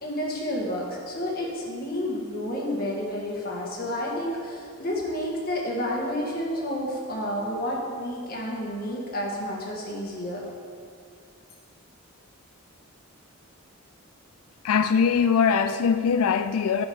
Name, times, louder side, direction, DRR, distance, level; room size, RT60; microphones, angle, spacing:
voice 1, 0.0-10.4, left 1 dB, 40° left, -2 dB, 1.7 m, -30 dB
voice 2, 14.6-16.9, left 6 dB, 80° left, 9 dB, 0.4 m, -22 dB
11.0 x 5.2 x 5.4 m, 2.2 s
head